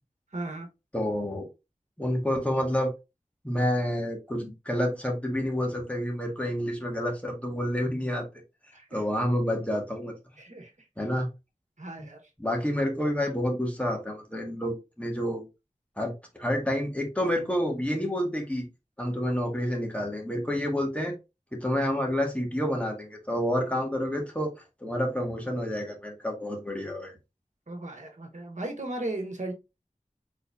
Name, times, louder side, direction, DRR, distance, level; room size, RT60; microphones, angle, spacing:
voice 1, 0.3-0.7 8.7-9.0 10.4-10.7 11.8-12.2 27.7-29.5, right 2 dB, 65° right, 1.4 m, -36 dB
voice 2, 0.9-1.5 2.0-2.9 3.4-8.3 8.9-10.1 11.0-11.3 12.4-15.4 16.0-18.7 19.0-21.1 21.5-24.5 24.8-27.2, equal, 10° left, 1.7 m, -29 dB
4.4 x 3.9 x 2.6 m
wide cardioid pair, 40°, 13 cm